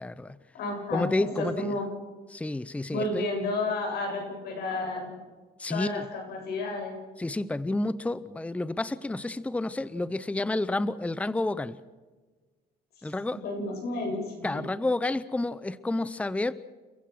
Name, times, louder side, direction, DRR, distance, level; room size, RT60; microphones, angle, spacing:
voice 1, 0.0-0.4 0.9-1.7 2.3-3.2 5.6-6.0 7.2-11.8 13.0-13.4 14.4-16.5, left 2 dB, 10° left, 16 dB, 0.7 m, -30 dB
voice 2, 0.5-1.9 2.9-5.2 5.7-7.0 13.4-14.6, left 2 dB, 70° left, 2 dB, 7.9 m, -31 dB
29.5 x 15.0 x 6.2 m, 1.3 s
cardioid pair, 110°, 17 cm